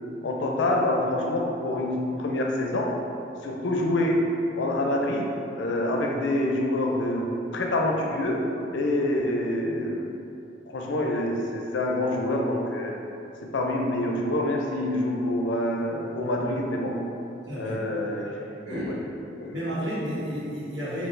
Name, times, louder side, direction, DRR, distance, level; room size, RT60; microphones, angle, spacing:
voice 1, 0.2-2.9 3.4-4.2 4.6-5.3 5.6-7.3 7.5-8.4 8.7-10.2 10.7-12.9 13.5-16.9 17.6-18.5 18.9-19.0 19.4-19.5, left 1 dB, 80° left, 0 dB, 0.4 m, -26 dB
voice 2, 17.5-17.8 18.6-19.0 19.5-21.1, equal, 85° right, -9 dB, 1.3 m, -31 dB
5.9 x 2.3 x 2.6 m, 2.8 s
head